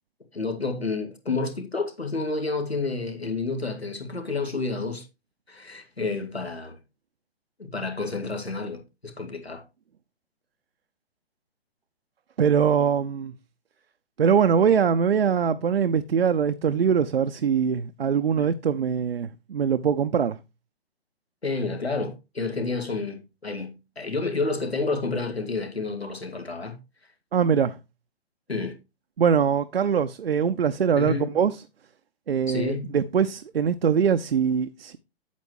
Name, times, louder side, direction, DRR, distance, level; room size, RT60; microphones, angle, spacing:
voice 1, 0.3-5.1 5.5-6.8 7.6-9.6 18.4-18.5 21.4-26.8 28.5-28.7 31.0-31.3 32.5-32.9, left 3 dB, 85° left, 2.1 m, -30 dB
voice 2, 12.4-13.3 14.2-20.4 27.3-27.8 29.2-31.6 32.3-35.0, right 7 dB, 70° right, 0.6 m, -22 dB
8.4 x 8.3 x 3.0 m
figure-of-eight pair, 125°, 31 cm